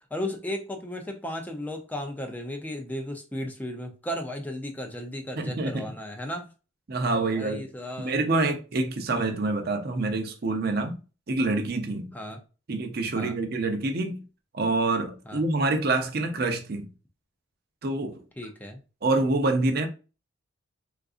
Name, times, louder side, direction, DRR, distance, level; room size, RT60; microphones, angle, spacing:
voice 1, 0.1-6.5 7.1-8.2 12.1-12.4 13.2-13.4 15.3-15.4 18.4-18.8, left 1 dB, 10° left, 0.4 m, -35 dB
voice 2, 5.4-5.9 6.9-7.6 8.0-11.0 11.3-12.1 12.7-14.2 14.5-16.9 17.8-18.2 19.0-19.9, right 2 dB, 45° right, 0.5 m, -26 dB
3.8 x 2.4 x 2.4 m
head